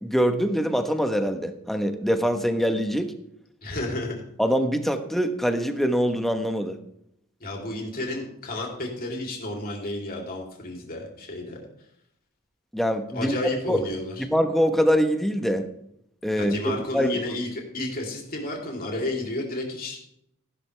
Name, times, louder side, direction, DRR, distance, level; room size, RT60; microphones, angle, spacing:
voice 1, 0.0-3.1 4.4-6.8 12.7-13.3 13.7-13.8 14.3-15.7 16.2-17.2, equal, ahead, 6 dB, 1.0 m, -24 dB
voice 2, 3.6-4.2 7.4-11.6 13.1-14.2 16.4-20.0, left 1 dB, 45° left, 0 dB, 3.1 m, -31 dB
14.5 x 11.5 x 3.4 m, 0.74 s
head